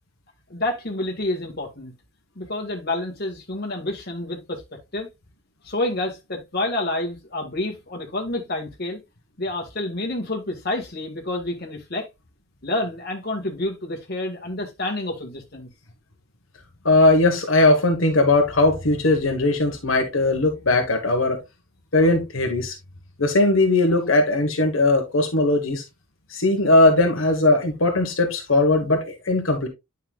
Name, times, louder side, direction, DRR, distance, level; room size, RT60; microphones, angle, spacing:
voice 1, 0.5-1.9 2.4-4.6 4.9-5.1 5.6-9.0 9.4-12.1 12.6-15.7, left 2 dB, 50° left, 1.9 m, -28 dB
voice 2, 16.8-21.4 21.9-22.7 23.2-25.8 26.3-29.7, left 2 dB, 75° left, 1.5 m, -19 dB
9.5 x 5.6 x 2.4 m
head